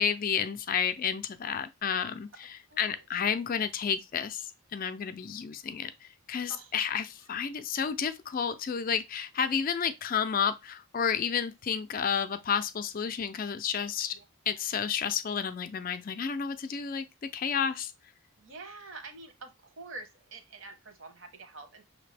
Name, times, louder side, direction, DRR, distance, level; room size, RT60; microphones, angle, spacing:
voice 1, 0.0-2.3 2.8-14.2 14.5-17.1 17.3-17.9, left 7 dB, 40° left, 0.4 m, -31 dB
voice 2, 2.7-3.0 6.5-6.8 7.2-7.3 14.1-14.2 14.5-14.6 18.4-21.8, right 3 dB, 60° right, 1.1 m, -47 dB
5.8 x 2.8 x 3.3 m
head